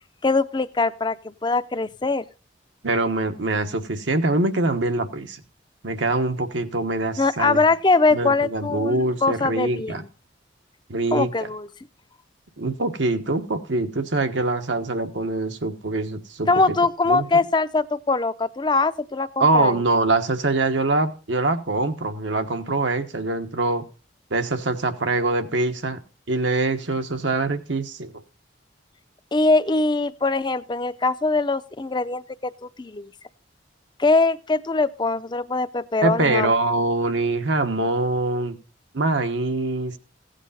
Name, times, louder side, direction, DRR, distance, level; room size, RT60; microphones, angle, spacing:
voice 1, 0.2-1.2 1.4-2.2 7.2-10.1 11.1-11.7 16.5-19.8 29.3-33.1 34.0-36.5, left 3 dB, 25° left, 13 dB, 0.5 m, -22 dB
voice 2, 2.8-5.4 5.8-7.6 8.1-10.0 10.9-11.3 12.6-16.5 17.1-17.3 19.4-23.8 24.3-26.0 26.3-28.1 36.0-38.5 38.9-40.0, right 2 dB, 80° right, 7 dB, 1.2 m, -24 dB
16.0 x 8.3 x 4.1 m, 0.35 s
head